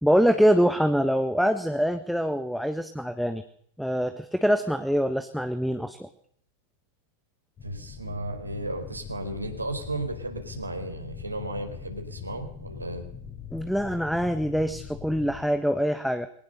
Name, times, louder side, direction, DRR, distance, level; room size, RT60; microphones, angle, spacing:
voice 1, 0.0-3.4 3.8-6.1 13.5-16.3, equal, ahead, 9 dB, 1.4 m, -24 dB
sound 1, 7.6-15.5, left 7 dB, 25° left, 4.6 m, -42 dB
voice 2, 7.6-13.1, right 2 dB, 85° right, 4 dB, 4.3 m, -34 dB
22.5 x 18.5 x 6.7 m, 0.65 s
figure-of-eight pair, 90°, 0 cm